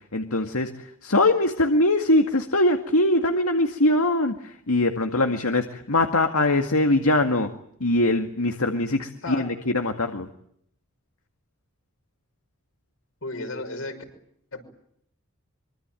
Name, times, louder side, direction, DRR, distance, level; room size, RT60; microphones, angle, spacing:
voice 1, 0.0-7.5 7.8-10.3, left 2 dB, 85° left, 5 dB, 2.1 m, -22 dB
voice 2, 13.2-14.0 14.5-14.6, left 2 dB, 70° left, 6 dB, 6.1 m, -33 dB
25.5 x 25.0 x 9.1 m, 0.69 s
head